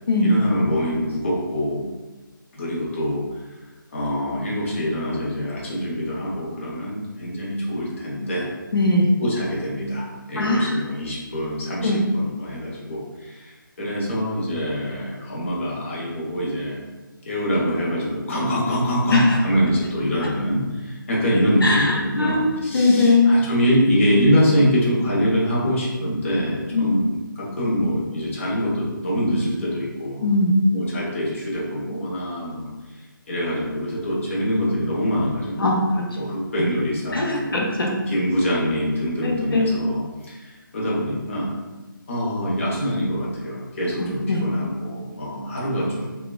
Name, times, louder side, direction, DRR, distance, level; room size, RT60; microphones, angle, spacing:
voice 1, 0.2-1.8 2.5-3.4 3.9-8.5 9.2-16.8 17.3-30.3 30.7-33.0 33.3-35.8 36.2-37.6 38.1-41.5 42.1-46.2, equal, 35° left, -5 dB, 0.6 m, -24 dB
voice 2, 8.7-9.2 10.4-10.8 11.8-12.0 19.1-19.4 21.6-23.3 26.7-26.9 30.2-30.6 35.6-36.0 37.1-37.9 39.2-39.8 44.3-44.4, left 2 dB, 90° left, 0 dB, 0.5 m, -20 dB
2.9 x 2.2 x 2.2 m, 1.2 s
figure-of-eight pair, 165°, 12 cm